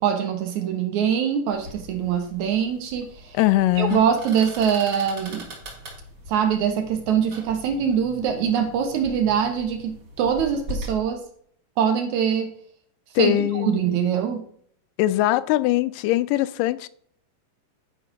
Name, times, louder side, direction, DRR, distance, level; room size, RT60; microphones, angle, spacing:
voice 1, 0.0-3.4 3.8-5.5 6.3-11.2 11.8-12.5 13.2-14.4, right 8 dB, 65° right, 6 dB, 2.3 m, -23 dB
sound 1, 1.5-11.0, equal, 35° right, 3.3 m, -40 dB
voice 2, 3.3-4.0 13.2-13.8 15.0-16.9, left 14 dB, 85° left, 15 dB, 2.1 m, -21 dB
13.0 x 4.8 x 5.8 m, 0.63 s
omnidirectional pair, 3.9 m